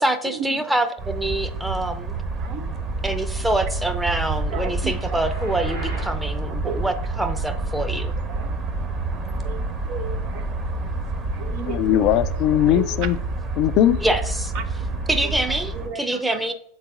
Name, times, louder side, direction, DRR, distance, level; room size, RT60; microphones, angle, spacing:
voice 1, 0.0-2.1 3.0-8.1 14.0-14.8 15.1-16.5, right 1 dB, 5° right, 8 dB, 0.7 m, -25 dB
sound 1, 1.0-15.9, right 2 dB, 30° right, 1.1 m, -28 dB
voice 2, 2.4-3.1 4.5-5.0 6.6-6.9 7.2-7.3 8.3-12.1 12.5-12.8 14.5-15.1 15.7-16.2, right 7 dB, 55° right, 7 dB, 0.6 m, -36 dB
sound 2, 4.0-6.2, right 1 dB, 80° right, 2.5 m, -40 dB
voice 3, 11.6-13.2 13.6-14.0, left 12 dB, 50° left, 14 dB, 0.4 m, -19 dB
7.5 x 4.0 x 3.7 m, 0.68 s
hypercardioid pair, 90°, 0 cm